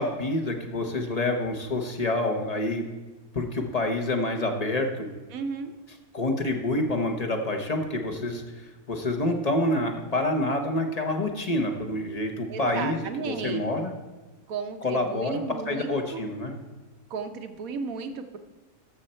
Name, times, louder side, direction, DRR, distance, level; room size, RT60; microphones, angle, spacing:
voice 1, 0.0-2.8 3.3-5.1 6.1-8.4 8.9-13.9 14.8-16.5, left 1 dB, 30° left, 3 dB, 0.9 m, -27 dB
voice 2, 5.3-5.7 12.5-13.7 14.5-16.2 17.1-18.4, right 5 dB, 65° right, 7 dB, 1.2 m, -34 dB
13.0 x 6.5 x 4.3 m, 1.2 s
omnidirectional pair, 1.6 m